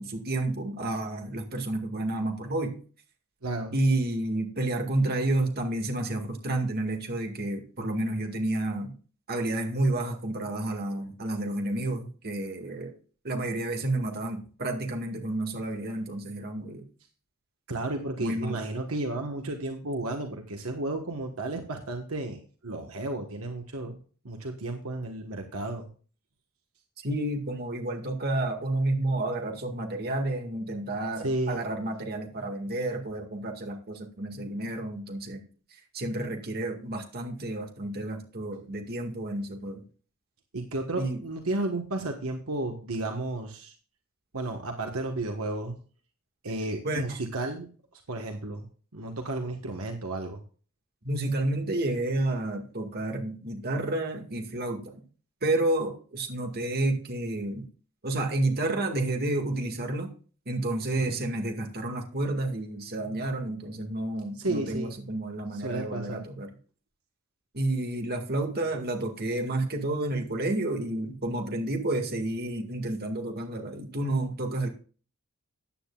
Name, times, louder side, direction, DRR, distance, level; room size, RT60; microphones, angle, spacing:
voice 1, 0.0-2.7 3.7-8.9 9.3-12.9 13.2-16.8 18.2-18.6 27.0-39.8 41.0-41.2 46.8-47.2 51.0-54.9 55.4-57.6 58.0-60.1 60.5-66.5 67.5-74.7, right 2 dB, 45° right, 3 dB, 2.1 m, -30 dB
voice 2, 3.4-3.7 17.7-24.0 24.2-25.9 31.2-31.6 40.5-43.7 44.3-45.8 46.4-47.7 47.9-50.4 61.1-61.2 64.3-64.9 65.5-66.2, right 2 dB, 70° right, 4 dB, 1.5 m, -33 dB
14.5 x 9.5 x 2.4 m, 0.39 s
head